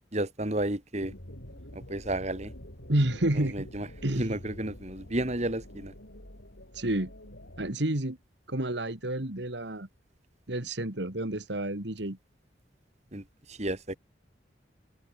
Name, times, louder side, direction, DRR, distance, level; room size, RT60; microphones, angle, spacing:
voice 1, 0.1-1.1 1.7-2.5 3.5-3.9 4.1-5.9 13.1-13.2 13.5-14.0, right 1 dB, 40° right, 3.0 m, -32 dB
sound 1, 1.0-7.7, left 1 dB, 80° left, 7.4 m, -47 dB
voice 2, 2.9-3.7 4.0-4.4 6.7-7.1 7.6-8.2 8.5-9.9 10.5-12.2, right 1 dB, 70° right, 2.5 m, -29 dB
head